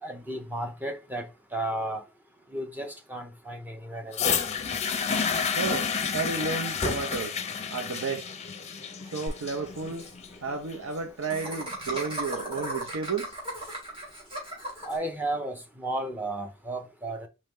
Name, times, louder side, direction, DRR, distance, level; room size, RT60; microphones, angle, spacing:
voice 1, 0.0-1.3 1.5-2.0 2.5-4.4 14.8-17.3, right 1 dB, 10° right, 0.8 m, -33 dB
sound 1, 4.1-12.1 12.9-13.0, left 6 dB, 30° left, 0.6 m, -30 dB
voice 2, 5.6-7.4 7.7-8.3 9.0-10.1 10.4-13.3, right 4 dB, 70° right, 0.6 m, -32 dB
Laughter, 9.3-9.4 9.6-9.7 9.9-10.1 11.3-15.0, right 1 dB, 25° right, 1.9 m, -36 dB
4.3 x 3.1 x 3.7 m
head